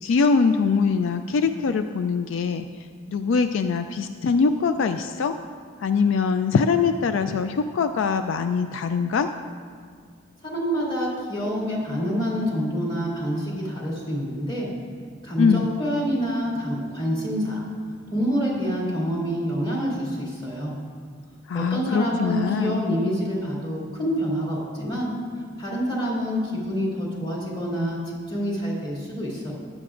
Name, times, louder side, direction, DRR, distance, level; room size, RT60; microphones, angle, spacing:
voice 1, 0.0-2.7 3.1-5.3 5.8-9.3 15.4-15.7 21.5-22.8, left 5 dB, 75° left, 8 dB, 0.4 m, -22 dB
voice 2, 10.4-14.7 15.2-17.6 18.1-20.7 21.5-25.1 25.6-29.5, equal, 25° left, -5 dB, 2.7 m, -27 dB
15.0 x 10.0 x 2.5 m, 2.1 s
head